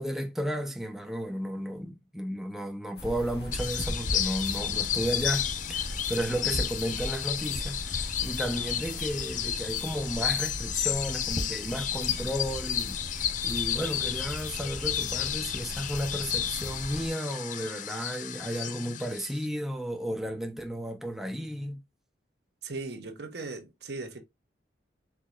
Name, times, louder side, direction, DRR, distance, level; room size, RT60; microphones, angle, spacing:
voice 1, 0.0-21.8, equal, ahead, 0.7 m, -33 dB
sound 1, 3.0-17.1, left 1 dB, 65° left, 1.2 m, -38 dB
sound 2, 3.5-19.5, left 10 dB, 45° left, 0.4 m, -32 dB
voice 2, 22.6-24.2, right 3 dB, 65° right, 1.0 m, -38 dB
4.7 x 4.1 x 2.4 m
head